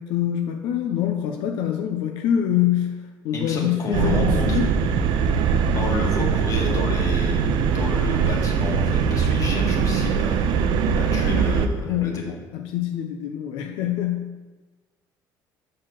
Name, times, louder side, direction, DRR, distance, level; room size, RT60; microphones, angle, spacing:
voice 1, 0.0-3.0 3.2-4.7 11.3-11.4 11.8-12.2 12.5-14.3, left 10 dB, 85° left, 3 dB, 0.6 m, -25 dB
voice 2, 3.3-4.6 5.7-10.5 11.0-12.3, left 2 dB, 40° left, -1 dB, 1.6 m, -31 dB
sound 1, 3.9-11.7, right 6 dB, 70° right, 0.5 m, -21 dB
6.4 x 4.3 x 6.3 m, 1.2 s
cardioid pair, 150°, 8 cm